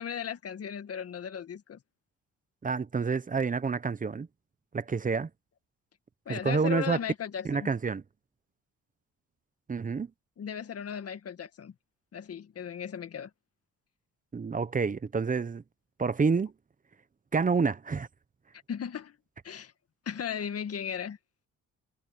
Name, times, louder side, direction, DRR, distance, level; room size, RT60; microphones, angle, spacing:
voice 1, 0.0-1.8 6.3-7.7 10.4-11.7 12.1-13.3 18.7-19.2 19.4-19.7 20.1-21.2, left 8 dB, 50° left, 1.9 m, -36 dB
voice 2, 2.6-4.3 4.7-5.3 6.3-7.0 7.4-8.0 9.7-10.1 14.3-15.6 16.0-16.5 17.3-18.1, right 5 dB, 25° right, 1.0 m, -28 dB
cardioid pair, 90°, 30 cm